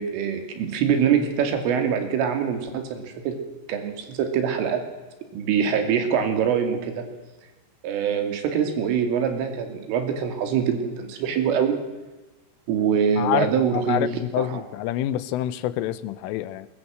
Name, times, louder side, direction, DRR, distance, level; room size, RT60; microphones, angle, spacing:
voice 1, 0.0-3.4 3.7-4.8 5.3-7.1 7.8-11.8 12.7-14.1 14.4-14.6, right 7 dB, 85° right, 6 dB, 5.2 m, -24 dB
voice 2, 13.2-16.7, left 13 dB, 90° left, 16 dB, 3.5 m, -27 dB
21.0 x 20.5 x 7.7 m, 1.1 s
omnidirectional pair, 5.6 m